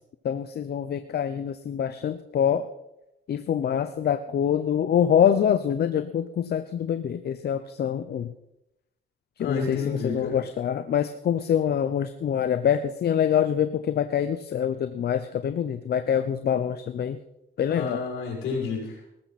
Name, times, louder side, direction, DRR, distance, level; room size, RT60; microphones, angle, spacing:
voice 1, 0.2-2.7 3.3-8.3 9.4-17.2 17.6-18.0, left 9 dB, 55° left, 10 dB, 0.8 m, -25 dB
voice 2, 9.4-10.4 16.1-16.2 17.7-19.2, left 5 dB, 90° left, -2 dB, 6.5 m, -30 dB
18.5 x 14.5 x 4.3 m, 0.89 s
cardioid pair, 90°, 20 cm